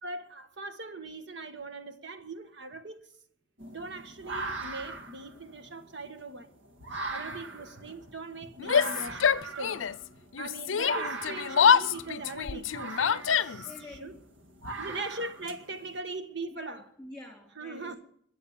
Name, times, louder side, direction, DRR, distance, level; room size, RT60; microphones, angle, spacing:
voice 1, 0.0-3.1 3.7-6.5 7.1-9.9 10.4-13.7 14.0-14.1 14.8-16.8 17.6-18.0, right 3 dB, 65° right, 1.4 m, -40 dB
sound 1, 3.6-16.0, right 2 dB, 85° right, 1.9 m, -40 dB
Yell, 8.6-10.0 10.3-13.8, left 7 dB, 85° left, 0.5 m, -25 dB
voice 2, 13.6-14.2 14.8-15.0 16.5-17.9, left 2 dB, 5° left, 4.1 m, -48 dB
21.5 x 8.0 x 7.3 m
head